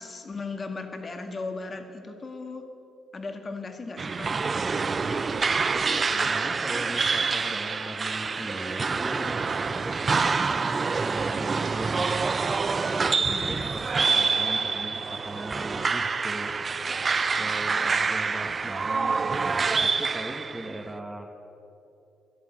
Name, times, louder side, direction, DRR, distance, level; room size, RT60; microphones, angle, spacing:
voice 1, 0.0-2.7 3.1-4.3 13.3-13.7, left 3 dB, 35° left, 6 dB, 2.0 m, -37 dB
sound 1, 4.0-20.8, right 4 dB, 35° right, 0.6 m, -26 dB
voice 2, 6.1-12.2 12.8-16.5 17.4-21.3, right 1 dB, 10° right, -1 dB, 1.6 m, -39 dB
14.0 x 11.0 x 9.1 m, 2.8 s
cardioid pair, 90°, 0 cm